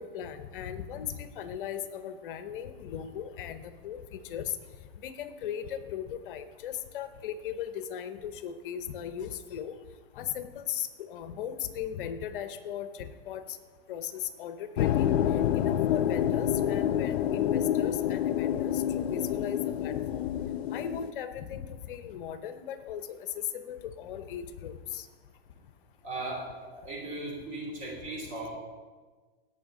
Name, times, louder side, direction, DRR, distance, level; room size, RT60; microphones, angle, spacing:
voice 1, 0.0-4.4 5.0-9.8 10.1-13.4 13.9-15.1 15.6-20.2 20.7-23.2 23.5-25.1, left 9 dB, 55° left, 11 dB, 0.8 m, -37 dB
sound 1, 14.8-21.1, left 10 dB, 85° left, 0.5 m, -28 dB
voice 2, 26.0-28.5, right 2 dB, 25° right, -2 dB, 2.9 m, -37 dB
16.5 x 5.8 x 3.8 m, 1.4 s
hypercardioid pair, 145°, 31 cm